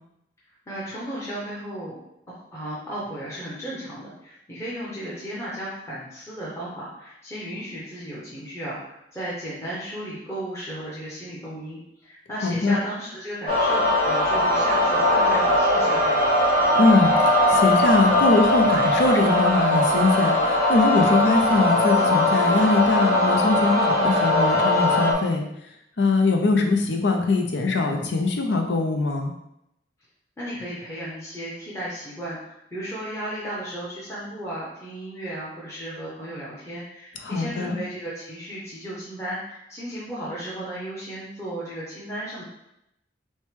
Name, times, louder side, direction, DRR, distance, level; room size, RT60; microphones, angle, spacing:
voice 1, 0.7-2.0 2.3-16.2 30.4-42.4, right 1 dB, 15° left, -8 dB, 0.9 m, -35 dB
voice 2, 12.4-12.8 16.8-25.4 26.0-29.3 37.2-37.8, left 3 dB, 75° left, 3 dB, 0.6 m, -22 dB
sound 1, 13.5-25.1, left 1 dB, 45° left, 1.1 m, -20 dB
6.3 x 2.2 x 3.3 m, 0.81 s
head